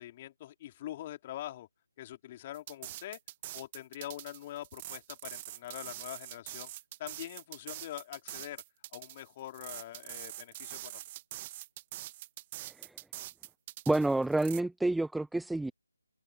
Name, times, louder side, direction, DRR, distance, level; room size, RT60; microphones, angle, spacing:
voice 1, 0.0-1.7 2.0-3.2 3.5-6.7 7.0-8.6 8.9-11.0, left 13 dB, 25° left, 3.2 m, -44 dB
sound 1, 2.5-14.6, right 16 dB, 20° right, 2.0 m, -44 dB
voice 2, 13.9-15.7, right 2 dB, ahead, 0.3 m, -29 dB
open air
figure-of-eight pair, 150°, 0 cm